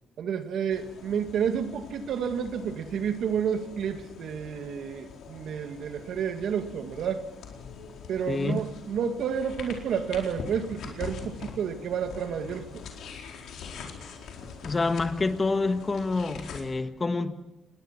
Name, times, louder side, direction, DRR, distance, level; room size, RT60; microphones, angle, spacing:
voice 1, 0.2-7.3 8.1-12.8, right 7 dB, 70° right, 2.1 m, -30 dB
sound 1, 0.7-16.6, left 5 dB, 75° left, 4.4 m, -44 dB
voice 2, 8.3-8.6 14.6-17.3, left 3 dB, 30° left, 1.6 m, -27 dB
28.0 x 21.0 x 5.9 m
cardioid pair, 90°, 0 cm